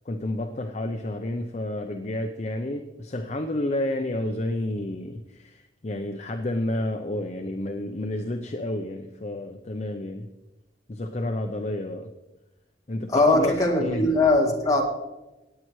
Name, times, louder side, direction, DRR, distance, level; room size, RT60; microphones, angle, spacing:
voice 1, 0.1-10.3 10.9-12.1 12.9-13.5 13.8-14.0, left 1 dB, 35° left, 5 dB, 0.6 m, -30 dB
voice 2, 13.1-14.8, left 2 dB, 20° left, -2 dB, 2.1 m, -20 dB
17.5 x 8.7 x 3.1 m, 1.0 s
head